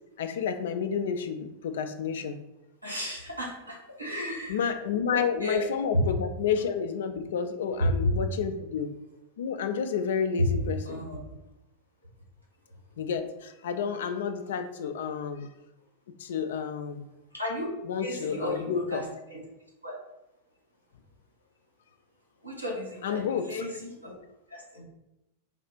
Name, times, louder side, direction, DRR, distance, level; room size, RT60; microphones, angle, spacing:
voice 1, 0.2-2.4 4.5-8.9 9.4-11.0 13.0-15.5 16.2-17.0 17.9-19.0 23.0-23.5, left 6 dB, 60° left, 8 dB, 0.4 m, -30 dB
voice 2, 2.8-4.6 5.1-5.7 5.9-6.0 7.8-8.1 10.4-10.6 10.8-11.2 13.7-13.8 17.3-17.7 18.0-19.4 19.8-20.0 22.4-24.2 24.5-24.8, left 1 dB, 90° right, -3 dB, 1.1 m, -32 dB
4.1 x 2.4 x 4.4 m, 0.91 s
figure-of-eight pair, 90°, 0 cm